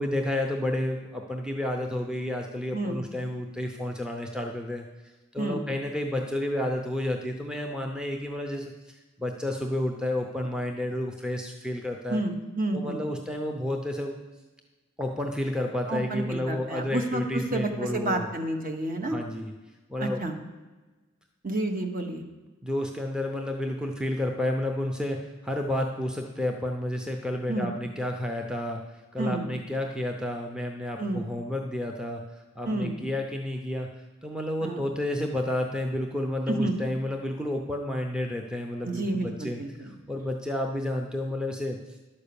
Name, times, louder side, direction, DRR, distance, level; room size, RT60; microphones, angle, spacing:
voice 1, 0.0-4.8 5.3-12.2 12.7-14.2 15.0-18.3 19.1-19.5 19.9-20.2 22.6-25.2 25.4-28.8 29.1-32.2 32.6-33.9 34.2-41.8, left 1 dB, 5° right, 1 dB, 0.6 m, -31 dB
voice 2, 12.1-13.0 15.9-17.2 17.5-19.2 20.0-20.3 21.4-22.2 27.5-27.7 29.2-29.5 31.0-31.2 32.6-32.9 34.6-34.8 36.5-36.7 38.8-39.9, right 2 dB, 45° right, 4 dB, 1.2 m, -30 dB
11.0 x 5.5 x 7.0 m, 1.2 s
head